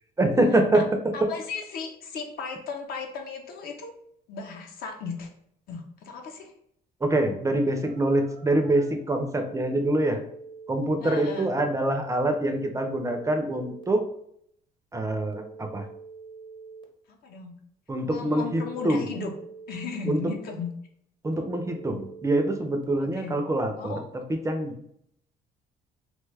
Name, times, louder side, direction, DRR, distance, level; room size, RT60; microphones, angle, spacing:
voice 1, 0.2-1.3 7.0-10.2 10.7-14.0 14.9-15.9 17.9-19.0 20.1-20.3 21.2-23.9 24.3-24.7, right 1 dB, 20° right, 5 dB, 0.4 m, -25 dB
voice 2, 1.1-3.9 4.3-5.3 5.7-6.5 11.0-11.5 17.2-17.5 18.0-19.3 19.7-20.7 23.0-23.4 23.8-24.0, left 4 dB, 65° left, 3 dB, 0.7 m, -36 dB
Telephone, 7.8-8.8 9.3-10.8 12.3-13.8 15.3-16.8 18.3-19.8 21.3-22.8, right 4 dB, 30° left, 0.7 m, -45 dB
3.0 x 2.2 x 3.2 m, 0.69 s
cardioid pair, 110°, 17 cm